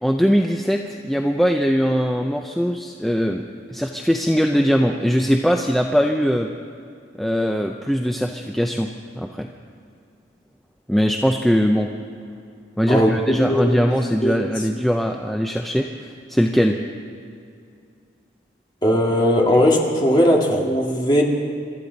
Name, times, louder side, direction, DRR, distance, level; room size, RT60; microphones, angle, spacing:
voice 1, 0.0-6.5 7.2-8.9 9.2-9.5 10.9-11.9 12.8-16.8, equal, ahead, 2 dB, 0.5 m, -21 dB
voice 2, 12.9-13.8 14.2-14.4 18.8-21.2, equal, 25° left, -1 dB, 2.0 m, -18 dB
27.0 x 13.0 x 4.0 m, 2.4 s
head